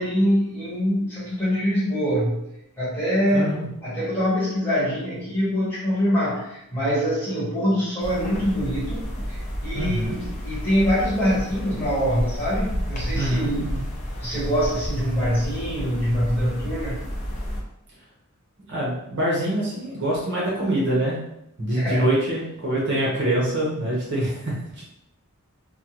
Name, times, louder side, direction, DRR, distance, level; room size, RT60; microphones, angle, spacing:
voice 1, 0.0-2.4 2.8-3.6 3.8-13.6 14.2-17.0 21.7-22.1, equal, 10° left, -10 dB, 1.4 m, -24 dB
voice 2, 3.3-3.7 9.7-10.2 13.1-13.8 18.7-21.2 21.6-24.8, right 1 dB, 50° right, -5 dB, 0.9 m, -25 dB
sound 1, 8.0-17.6, equal, 35° left, 0.5 m, -31 dB
3.3 x 2.2 x 2.9 m, 0.82 s
head